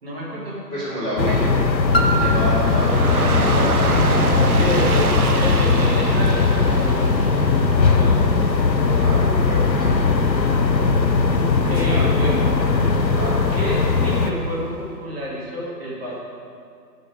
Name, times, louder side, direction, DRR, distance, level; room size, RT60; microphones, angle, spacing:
voice 1, 0.0-0.6 4.6-8.5 10.1-10.2 11.7-12.6 13.5-16.2, equal, 35° right, -6 dB, 2.5 m, -29 dB
voice 2, 0.7-1.5 2.0-3.7 4.3-4.8 9.4-10.1, equal, 5° left, -18 dB, 1.1 m, -27 dB
sound 1, 1.2-14.3, left 4 dB, 85° left, 0.9 m, -19 dB
Piano, 1.9-7.4 8.1-8.2, right 2 dB, 40° left, 0.5 m, -30 dB
Dog / Rain, 2.4-14.6, right 4 dB, 60° right, 0.9 m, -29 dB
13.5 x 5.6 x 4.9 m, 2.2 s
figure-of-eight pair, 150°, 50 cm